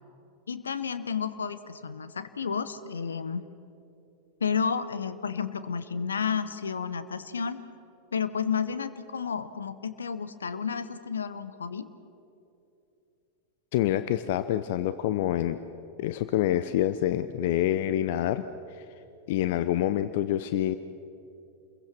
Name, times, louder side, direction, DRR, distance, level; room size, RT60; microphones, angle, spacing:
voice 1, 0.5-3.5 4.4-7.6 8.1-11.9, left 6 dB, 70° left, 13 dB, 1.0 m, -31 dB
voice 2, 13.7-15.6 16.0-18.5 18.7-18.8 19.3-20.8, left 12 dB, 50° left, 13 dB, 0.6 m, -27 dB
29.0 x 22.0 x 6.2 m, 2.8 s
figure-of-eight pair, 90°, 0 cm